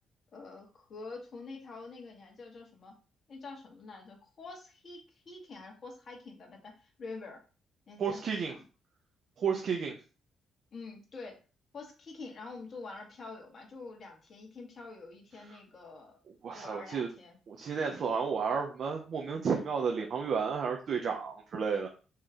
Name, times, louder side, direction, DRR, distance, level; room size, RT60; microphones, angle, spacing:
voice 1, 0.3-2.9 3.3-7.4 7.9-8.6 10.7-11.4 11.7-16.2 16.5-17.4, left 3 dB, 45° left, 0 dB, 1.7 m, -46 dB
voice 2, 8.0-8.5 9.4-10.0 16.4-17.1 17.5-21.9, right 6 dB, 60° right, 2 dB, 0.8 m, -32 dB
4.3 x 3.2 x 3.8 m, 0.35 s
cardioid pair, 90°, 0 cm